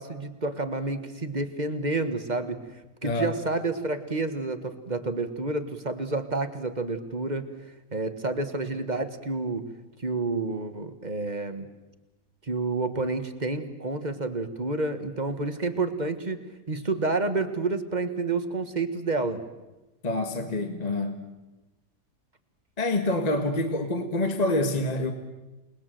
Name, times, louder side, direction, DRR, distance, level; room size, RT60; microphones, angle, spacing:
voice 1, 0.0-7.5 7.9-9.7 10.0-11.7 12.4-16.4 16.7-19.4, right 3 dB, 25° right, 9 dB, 1.6 m, -29 dB
voice 2, 20.0-21.3 22.8-25.1, left 2 dB, 25° left, 6 dB, 1.6 m, -27 dB
28.5 x 21.0 x 7.8 m, 1.1 s
omnidirectional pair, 1.8 m